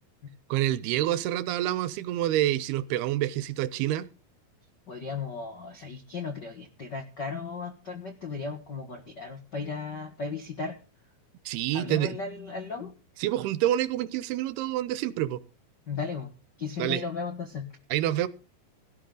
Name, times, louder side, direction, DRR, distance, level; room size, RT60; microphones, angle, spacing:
voice 1, 0.5-4.1 11.5-12.2 13.2-15.4 16.8-17.0 17.9-18.3, right 13 dB, 80° right, 15 dB, 2.8 m, -27 dB
voice 2, 4.9-10.8 11.7-12.9 15.9-16.3 16.6-17.7, left 4 dB, 70° left, 4 dB, 1.0 m, -35 dB
17.5 x 12.0 x 3.9 m, 0.35 s
omnidirectional pair, 4.6 m